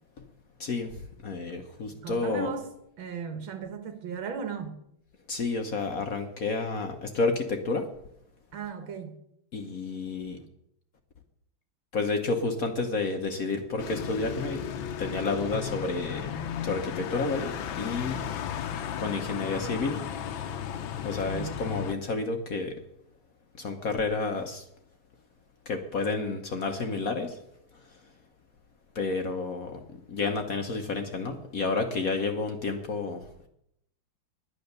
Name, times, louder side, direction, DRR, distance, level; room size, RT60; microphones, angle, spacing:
voice 1, 0.6-0.9 1.2-2.5 5.3-7.9 9.5-10.4 11.9-14.6 15.0-16.3 16.6-18.3 19.0-20.0 21.0-22.7 23.6-24.6 25.7-27.4 28.9-29.8 30.1-33.2, left 3 dB, 50° left, 1.2 m, -30 dB
voice 2, 1.9-2.7 3.0-4.7 8.5-9.2 21.3-21.6, right 5 dB, 70° right, 2.1 m, -36 dB
sound 1, 13.8-21.9, left 9 dB, 70° left, 1.6 m, -35 dB
10.5 x 10.0 x 6.7 m
omnidirectional pair, 2.3 m